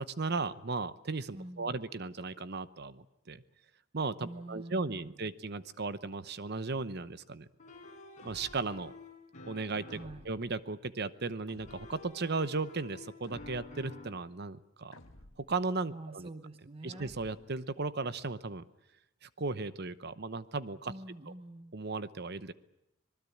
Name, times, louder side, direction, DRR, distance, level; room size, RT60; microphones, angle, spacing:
voice 1, 0.0-3.4 3.9-7.5 8.2-8.9 9.5-10.0 10.2-15.0 15.4-16.3 16.8-18.6 19.2-20.9 21.7-22.5, right 3 dB, 50° right, 14 dB, 0.9 m, -36 dB
voice 2, 1.3-1.8 4.2-5.3 9.9-10.3 15.9-17.1 20.9-21.8, right 2 dB, 30° right, 9 dB, 1.1 m, -46 dB
sound 1, 7.6-10.3 11.6-14.2, left 2 dB, 35° left, 5.1 m, -50 dB
sound 2, 8.2-8.8 9.9-10.6 11.5-12.1 13.2-13.9 14.9-15.6 16.9-17.6, left 1 dB, 90° left, 1.7 m, -55 dB
25.5 x 19.5 x 8.6 m, 0.85 s
head